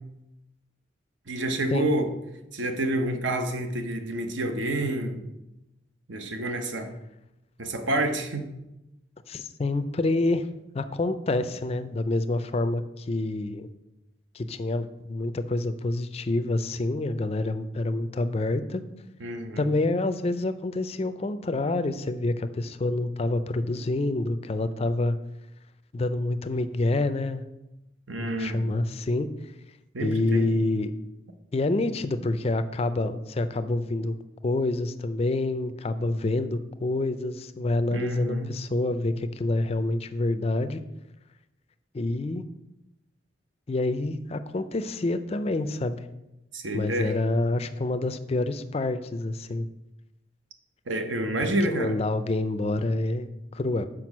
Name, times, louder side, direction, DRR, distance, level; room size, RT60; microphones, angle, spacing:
voice 1, 1.3-2.1 2.5-5.2 6.1-6.9 7.6-8.5 19.2-19.7 28.1-28.8 29.9-30.5 37.9-38.5 46.5-47.1 50.9-51.9, right 1 dB, 80° right, 6 dB, 0.9 m, -28 dB
voice 2, 9.3-10.5 10.7-13.7 14.3-18.8 19.6-25.2 25.9-27.4 28.2-29.3 30.0-30.9 31.5-34.2 34.4-40.8 41.9-42.4 43.7-46.1 46.7-49.7 51.6-53.9, left 2 dB, 30° left, 11 dB, 0.4 m, -27 dB
6.1 x 4.9 x 6.0 m, 0.93 s
head